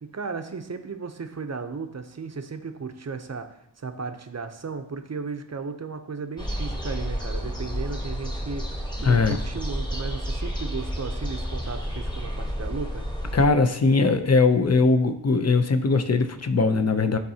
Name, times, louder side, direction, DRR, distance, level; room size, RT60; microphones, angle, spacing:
voice 1, 0.0-13.1, right 4 dB, 35° right, 7 dB, 0.6 m, -35 dB
sound 1, 6.4-13.5, equal, 10° left, 1.1 m, -31 dB
voice 2, 9.0-9.4 13.3-17.2, left 4 dB, 35° left, 9 dB, 0.6 m, -20 dB
12.0 x 4.0 x 2.8 m, 0.77 s
wide cardioid pair, 85°, 46 cm